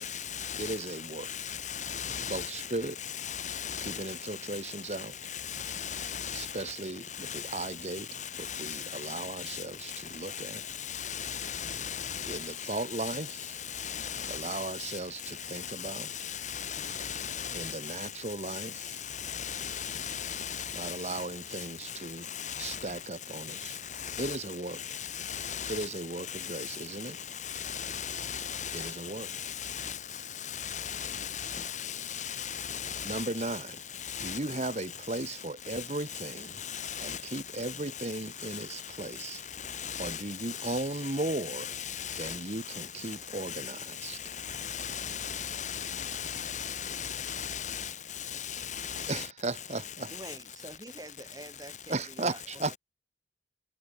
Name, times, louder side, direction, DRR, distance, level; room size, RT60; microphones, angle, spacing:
voice 1, 0.0-0.8 1.2-2.7 3.0-4.2 5.2-6.6 7.1-7.7 8.1-9.6 9.9-15.0 15.4-18.1 18.5-21.2 21.5-22.0 22.3-22.8 23.5-24.4 24.7-25.9 26.3-26.8 27.4-33.6 34.0-34.4 35.8-35.9 36.1-36.2 36.6-37.8 38.5-38.6 39.6-42.4 42.7-43.7 44.0-49.3, left 8 dB, 45° left, 6.7 m, -38 dB
voice 2, 0.6-1.3 2.3-3.0 3.8-5.1 6.3-10.6 12.2-13.6 14.3-16.1 17.5-19.1 20.7-22.3 22.6-23.8 24.2-24.8 25.7-27.2 28.7-29.3 33.0-33.8 34.2-36.6 37.0-39.4 40.0-41.7 42.2-44.2 49.1-50.1 51.9-52.7, right 2 dB, 40° right, 1.3 m, -36 dB
voice 3, 50.1-52.7, right 1 dB, 20° right, 3.0 m, -46 dB
head